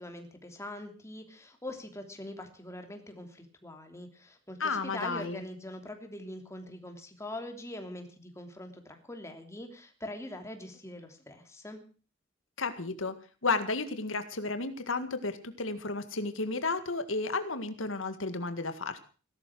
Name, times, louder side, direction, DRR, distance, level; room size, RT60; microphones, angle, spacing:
voice 1, 0.0-11.8, left 1 dB, 15° left, 5 dB, 3.1 m, -43 dB
voice 2, 4.6-5.4 12.6-13.2 13.4-19.0, left 3 dB, 90° left, 10 dB, 1.9 m, -32 dB
17.5 x 12.5 x 6.2 m, 0.38 s
head